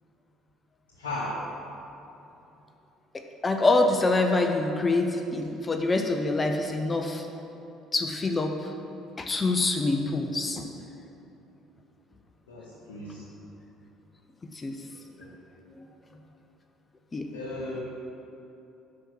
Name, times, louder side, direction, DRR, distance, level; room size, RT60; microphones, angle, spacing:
voice 1, 1.0-1.4 12.5-13.3 15.0-15.3 15.6-15.7 17.3-17.8, left 1 dB, 85° left, -5 dB, 0.9 m, -36 dB
voice 2, 3.4-7.3 7.9-8.7 9.2-10.7 14.5-14.8 15.8-15.9 17.1-17.3, left 2 dB, 25° left, 5 dB, 0.6 m, -25 dB
6.1 x 4.8 x 6.3 m, 3.0 s
hypercardioid pair, 60°, 0 cm